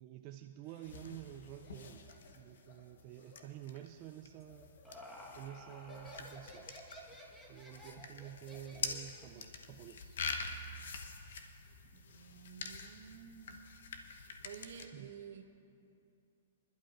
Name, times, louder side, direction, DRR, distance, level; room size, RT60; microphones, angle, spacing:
voice 1, 0.0-2.1 2.3-4.8 5.3-6.8 7.4-10.2 14.9-15.1, right 12 dB, 35° right, 5 dB, 0.4 m, -50 dB
Laughter, 0.6-7.0, left 3 dB, 50° left, 1.8 m, -64 dB
sound 1, 0.8-14.9, left 5 dB, 75° left, 1.0 m, -46 dB
Laughter 2, 4.4-9.6, equal, 10° left, 1.5 m, -53 dB
voice 2, 11.9-13.6 14.4-15.4, right 8 dB, 70° right, 4 dB, 1.2 m, -51 dB
25.5 x 11.5 x 2.6 m, 2.6 s
hypercardioid pair, 145°, 0 cm